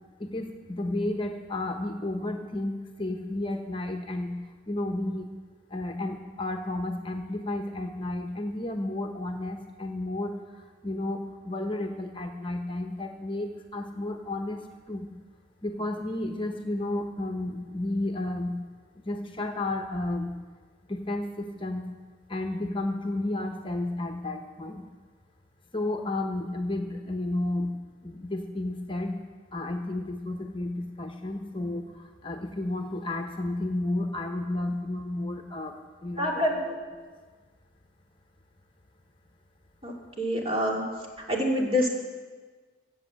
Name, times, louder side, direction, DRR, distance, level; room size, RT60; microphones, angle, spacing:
voice 1, 0.2-4.4 4.7-5.3 5.7-10.4 10.8-15.1 15.6-18.6 19.0-20.4 20.9-21.9 22.3-24.8 25.7-27.8 28.0-29.2 29.5-36.4, left 2 dB, 30° left, 4 dB, 1.0 m, -32 dB
voice 2, 36.2-36.8 39.8-40.8 41.3-41.9, equal, 35° right, -1 dB, 2.6 m, -26 dB
16.0 x 7.6 x 7.6 m, 1.4 s
head